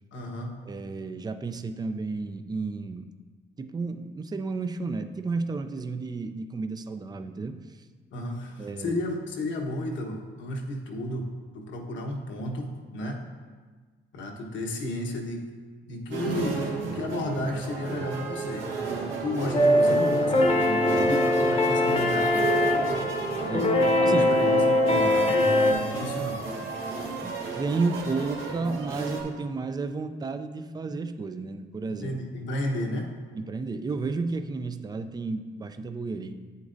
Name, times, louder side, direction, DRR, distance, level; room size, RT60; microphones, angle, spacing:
voice 1, 0.1-0.7 8.1-13.2 14.1-15.5 15.9-18.7 19.2-22.5 23.8-26.5 31.9-33.1, left 1 dB, 70° left, 1 dB, 1.2 m, -33 dB
voice 2, 0.7-3.1 3.6-7.6 8.6-9.0 23.4-24.2 25.3-25.4 27.2-32.1 33.3-36.3, right 3 dB, 20° right, 9 dB, 0.4 m, -32 dB
sound 1, 16.1-29.2, right 4 dB, 80° right, 1.4 m, -33 dB
sound 2, 19.5-25.7, left 1 dB, 30° left, 1.0 m, -22 dB
8.4 x 8.1 x 2.6 m, 1.5 s
cardioid pair, 90°, 20 cm